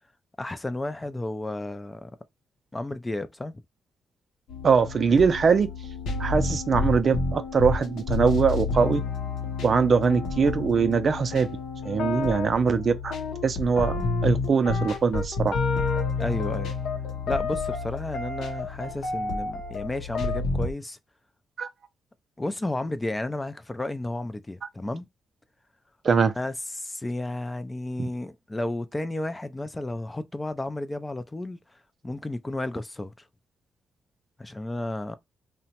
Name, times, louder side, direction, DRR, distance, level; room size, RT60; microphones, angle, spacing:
voice 1, 0.4-2.1 2.7-3.5 16.2-16.7 17.3-21.0 22.4-25.1 26.4-31.8 32.0-33.3 34.4-35.2, left 2 dB, 20° left, 0.3 m, -32 dB
sound 1, 4.5-20.7, left 4 dB, 80° left, 0.6 m, -29 dB
voice 2, 4.6-5.7 6.2-9.0 9.6-11.5 11.8-13.1 13.4-15.6 21.6-21.7 26.0-26.3 28.0-28.1, right 5 dB, 50° right, 0.4 m, -22 dB
2.8 x 2.1 x 2.8 m
cardioid pair, 80°, 0 cm